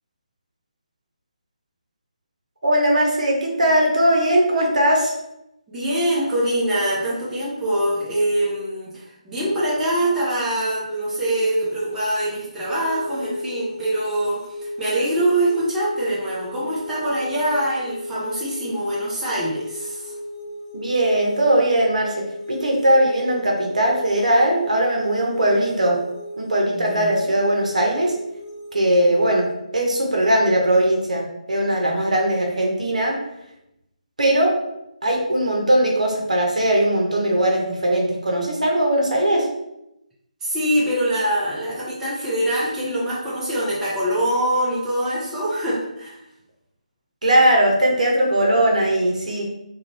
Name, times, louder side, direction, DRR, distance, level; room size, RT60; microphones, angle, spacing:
voice 1, 2.6-5.1 20.7-26.0 26.4-28.2 28.7-33.2 34.2-34.5 35.0-39.5 47.2-49.5, right 1 dB, 70° right, -1 dB, 0.7 m, -19 dB
voice 2, 5.7-20.1 26.6-27.2 40.4-46.2, right 1 dB, 10° right, -9 dB, 0.7 m, -24 dB
sound 1, 10.7-29.5, left 1 dB, 35° left, 0.7 m, -35 dB
2.4 x 2.2 x 3.1 m, 0.85 s
figure-of-eight pair, 145°, 4 cm